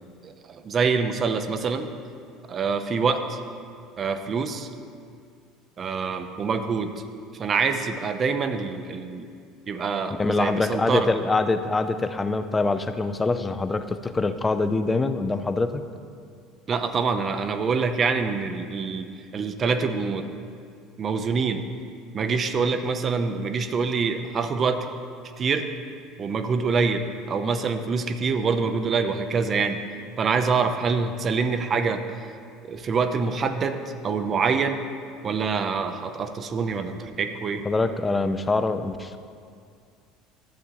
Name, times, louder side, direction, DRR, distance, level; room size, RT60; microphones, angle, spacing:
voice 1, 0.2-1.9 2.5-3.4 4.0-4.7 5.8-6.9 7.4-9.3 9.7-11.1 16.7-20.3 21.0-21.6 22.1-24.8 25.4-25.7 26.2-29.8 30.2-32.0 32.7-33.8 34.0-34.8 35.2-37.6, right 5 dB, 35° right, 8 dB, 0.6 m, -25 dB
voice 2, 10.2-15.8 37.6-39.2, left 3 dB, 15° left, 10 dB, 0.5 m, -24 dB
12.0 x 8.0 x 2.8 m, 2.3 s
figure-of-eight pair, 65°, 0 cm